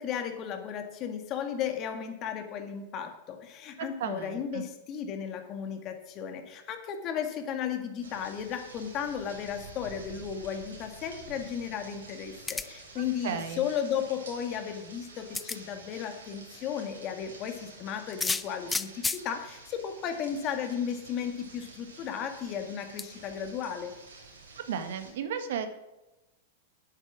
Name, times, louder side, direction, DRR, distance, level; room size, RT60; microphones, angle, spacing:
voice 1, 0.0-23.9, left 8 dB, 40° left, 6 dB, 1.8 m, -35 dB
voice 2, 3.8-4.6 13.0-13.7 24.6-25.7, right 7 dB, 70° right, 10 dB, 1.2 m, -35 dB
sound 1, 8.0-25.1, right 3 dB, 85° right, 3.2 m, -49 dB
sound 2, 12.5-12.9 14.5-14.6 15.3-15.6 18.1-19.2 20.3-20.4 20.7-20.8 23.0-23.1, left 4 dB, 15° left, 0.5 m, -31 dB
9.4 x 8.1 x 6.2 m, 1.0 s
hypercardioid pair, 110°, 0 cm